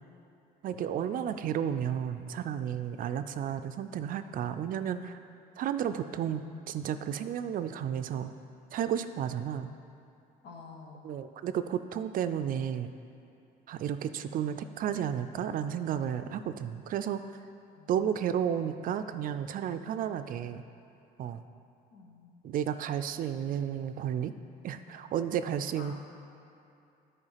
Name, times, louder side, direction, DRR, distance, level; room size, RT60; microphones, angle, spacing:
voice 1, 0.6-5.2 5.6-8.3 8.7-9.7 11.0-12.9 13.7-17.2 17.9-20.6 21.2-21.4 22.4-24.3 24.6-25.9, right 9 dB, 55° right, 10 dB, 0.4 m, -32 dB
voice 2, 10.4-11.1 17.7-18.2 21.9-22.5 25.7-25.9, left 4 dB, 75° left, 1 dB, 1.3 m, -50 dB
9.8 x 4.7 x 5.7 m, 2.7 s
cardioid pair, 110°, 17 cm